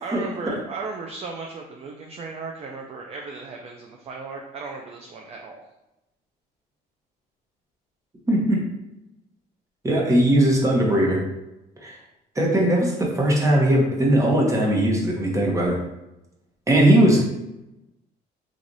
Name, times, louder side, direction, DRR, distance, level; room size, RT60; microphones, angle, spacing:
voice 1, 0.0-5.6, right 4 dB, 35° right, 1 dB, 0.4 m, -35 dB
voice 2, 8.3-8.6 9.8-11.2 11.8-11.9 12.4-15.8 16.7-17.2, right 1 dB, 20° right, -2 dB, 1.0 m, -19 dB
3.1 x 2.4 x 3.9 m, 0.94 s
cardioid pair, 110°, 17 cm